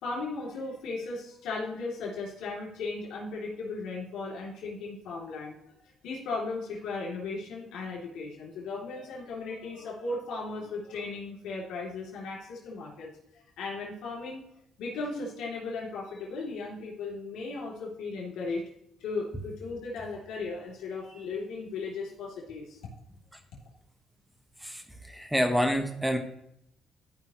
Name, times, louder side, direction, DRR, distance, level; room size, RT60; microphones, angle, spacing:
voice 1, 0.0-5.8 6.0-14.4 14.8-18.6 19.0-22.8, left 3 dB, 85° left, -3 dB, 2.9 m, -36 dB
voice 2, 24.6-26.2, equal, 5° right, 6 dB, 1.4 m, -28 dB
13.5 x 5.4 x 3.1 m, 0.77 s
cardioid pair, 90°, 0 cm